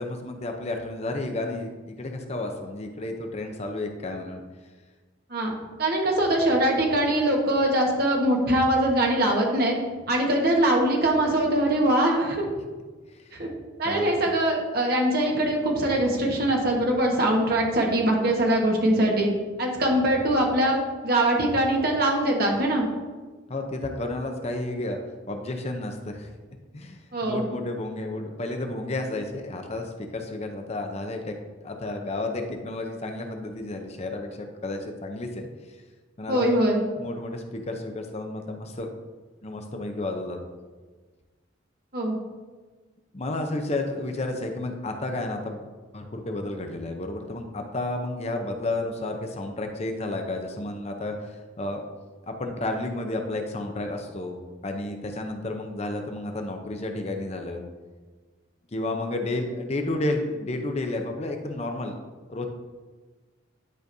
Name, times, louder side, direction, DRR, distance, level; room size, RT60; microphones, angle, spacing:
voice 1, 0.0-4.4 13.1-13.3 13.8-14.4 23.5-25.0 25.3-26.3 26.7-31.4 31.6-35.8 36.2-36.6 37.0-38.9 39.4-40.4 43.1-45.7 45.9-51.8 52.2-57.6 58.7-61.9 62.3-62.5, left 2 dB, 35° left, 4 dB, 0.6 m, -31 dB
voice 2, 5.8-9.8 10.1-12.5 13.3-13.5 13.8-22.9 27.1-27.4 36.3-36.8 41.9-42.2, right 1 dB, 50° right, 0 dB, 1.3 m, -22 dB
10.5 x 5.1 x 2.7 m, 1.4 s
head